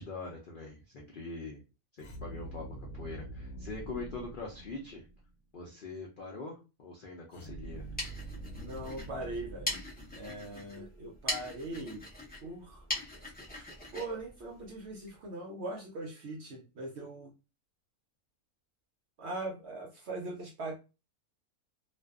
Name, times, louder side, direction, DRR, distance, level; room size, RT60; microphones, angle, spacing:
voice 1, 0.0-1.6 2.0-2.7 2.9-5.1 5.5-7.9, left 3 dB, 85° left, -1 dB, 0.4 m, -43 dB
sound 1, 2.0-5.3 7.3-10.6, right 1 dB, 65° left, 0.9 m, -45 dB
sound 2, 7.7-15.2, left 1 dB, 15° left, 0.3 m, -41 dB
voice 2, 8.5-9.8 10.1-12.0 12.4-12.8 13.9-17.3 19.2-20.7, right 2 dB, 65° right, 0 dB, 0.7 m, -40 dB
2.5 x 2.2 x 2.3 m, 0.29 s
omnidirectional pair, 1.6 m